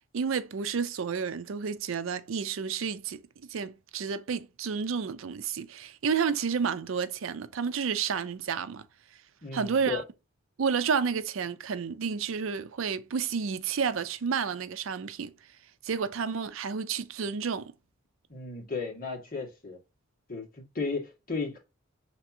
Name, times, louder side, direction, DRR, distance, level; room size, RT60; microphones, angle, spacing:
voice 1, 0.1-3.2 3.5-8.9 9.5-10.0 10.6-15.3 15.8-17.7, right 6 dB, 75° right, 0.5 m, -30 dB
voice 2, 9.4-10.0 18.3-19.8 20.3-21.6, left 4 dB, 45° left, 1.8 m, -34 dB
5.9 x 3.4 x 2.7 m
head